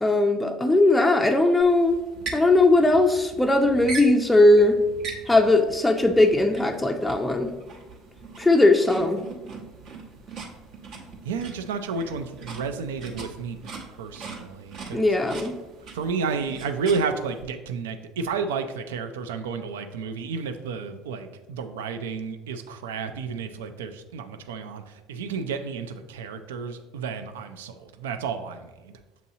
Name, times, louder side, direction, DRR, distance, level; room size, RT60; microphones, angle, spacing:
voice 1, 0.0-2.0 2.3-4.8 5.3-7.5 8.4-9.2 14.9-15.5, left 2 dB, 10° left, 4 dB, 0.4 m, -19 dB
sound 1, 1.6-17.4, right 4 dB, 60° right, 0.9 m, -41 dB
voice 2, 11.2-15.1 15.9-28.9, right 5 dB, 90° right, 8 dB, 0.3 m, -31 dB
7.2 x 2.7 x 2.7 m, 1.1 s
hypercardioid pair, 75°, 0 cm